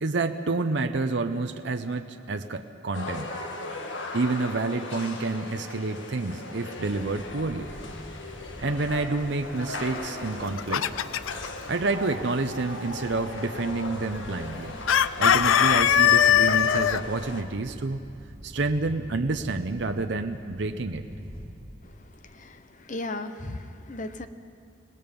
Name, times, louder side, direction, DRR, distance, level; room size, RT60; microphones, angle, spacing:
voice 1, 0.0-3.3 4.1-7.7 8.6-10.9 11.7-14.8 15.2-18.0 18.4-21.0, right 3 dB, 60° right, 6 dB, 0.7 m, -29 dB
sound 1, 2.9-17.4, left 2 dB, 70° left, 1.6 m, -38 dB
sound 2, 6.8-21.5, equal, 15° right, 4.6 m, -45 dB
Chicken rooster, 10.3-11.5 14.9-17.0, left 9 dB, 90° left, 0.5 m, -20 dB
voice 2, 21.8-24.3, left 2 dB, 40° left, 9 dB, 0.9 m, -37 dB
26.0 x 19.0 x 5.3 m, 2.6 s
head